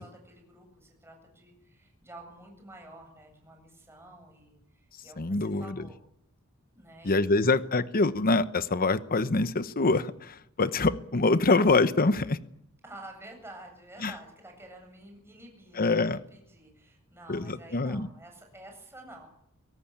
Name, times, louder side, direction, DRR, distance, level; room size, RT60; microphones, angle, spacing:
voice 1, 0.0-6.0 6.7-7.2 12.8-19.3, right 1 dB, 10° right, 2 dB, 7.8 m, -50 dB
voice 2, 5.2-5.8 7.0-12.4 14.0-14.1 15.8-16.2 17.3-18.1, left 3 dB, 40° left, 13 dB, 0.9 m, -25 dB
23.5 x 17.5 x 8.8 m, 0.76 s
head